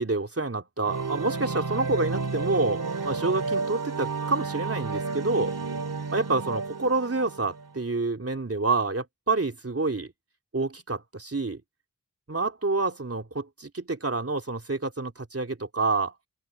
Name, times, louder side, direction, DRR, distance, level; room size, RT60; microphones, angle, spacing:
voice 1, 0.0-5.5 6.1-10.1 10.5-11.6 12.3-16.1, right 3 dB, 45° right, 3.3 m, -28 dB
sound 1, 0.8-7.7, right 4 dB, 80° right, 2.5 m, -31 dB
open air
wide cardioid pair, 45°, 32 cm